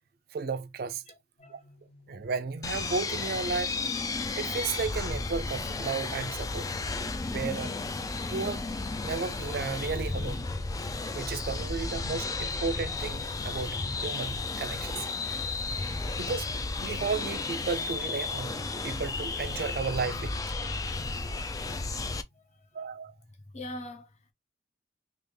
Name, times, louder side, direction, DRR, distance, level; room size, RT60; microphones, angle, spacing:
voice 1, 0.3-1.0 1.5-1.6 2.1-3.7 4.4-6.7 7.2-7.8 8.3-8.7 9.0-10.5 11.1-15.1 15.9-16.5 16.8-20.3 22.7-23.1, right 5 dB, 55° right, 0.4 m, -34 dB
voice 2, 1.1-1.7 22.3-22.7 23.5-24.3, left 1 dB, 40° left, 0.7 m, -43 dB
sound 1, 1.4-20.6, right 1 dB, 75° left, 1.7 m, -59 dB
sound 2, 2.6-22.2, left 3 dB, 20° left, 0.3 m, -33 dB
3.3 x 2.4 x 3.2 m
head